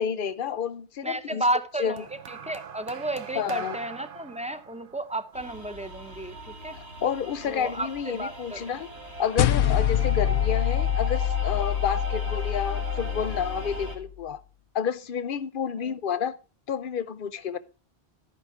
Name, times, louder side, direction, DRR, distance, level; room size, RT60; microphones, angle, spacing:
voice 1, 0.0-1.4 1.8-1.9 3.4-3.8 7.0-8.9 9.2-14.4 14.7-16.4 16.7-17.6, left 7 dB, 55° left, 0.8 m, -30 dB
voice 2, 1.0-6.8 7.4-8.6 9.6-9.8 15.8-15.9, right 1 dB, 10° right, 0.4 m, -32 dB
sound 1, 2.0-6.4 7.3-7.6, right 8 dB, 60° right, 0.8 m, -43 dB
sound 2, 5.3-14.0, right 1 dB, 80° right, 2.6 m, -38 dB
sound 3, 9.4-14.0, left 11 dB, 85° left, 0.9 m, -26 dB
13.0 x 5.4 x 4.9 m
omnidirectional pair, 1.1 m